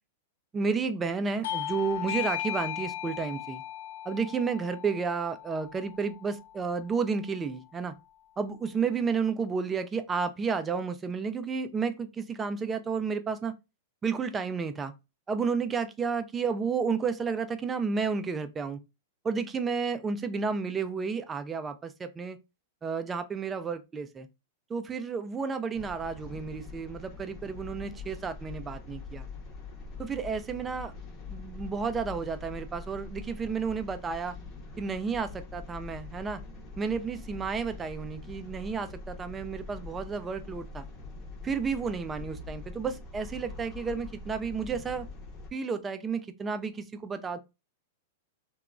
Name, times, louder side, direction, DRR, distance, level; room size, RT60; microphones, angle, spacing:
voice 1, 0.5-3.6 4.1-7.9 8.4-13.5 14.0-14.9 15.3-18.8 19.2-22.4 22.8-24.3 24.7-29.2 30.0-30.9 31.3-34.3 34.8-36.4 36.8-40.8 41.4-45.1 45.5-47.4, right 5 dB, 15° right, 0.3 m, -31 dB
Bell / Doorbell, 1.4-6.5, left 12 dB, 70° left, 0.4 m, -36 dB
sound 1, 25.7-45.5, left 3 dB, 25° left, 0.7 m, -44 dB
2.9 x 2.2 x 2.4 m
supercardioid pair, 155°, 0 cm